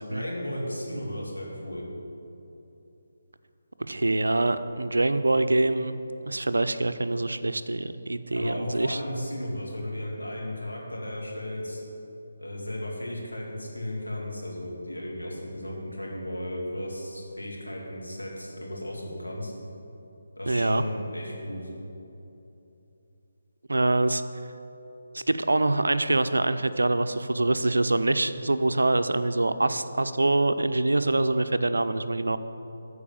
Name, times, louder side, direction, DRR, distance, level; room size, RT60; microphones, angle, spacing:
voice 1, 0.1-1.9 8.3-11.8 12.4-19.5 20.4-21.7, left 1 dB, 85° left, -3 dB, 2.5 m, -35 dB
voice 2, 3.9-6.0 6.2-9.0 20.5-20.8 23.7-24.2 25.1-32.4, right 2 dB, 75° right, 11 dB, 0.5 m, -25 dB
13.0 x 4.7 x 7.1 m, 2.9 s
figure-of-eight pair, 150°, 0 cm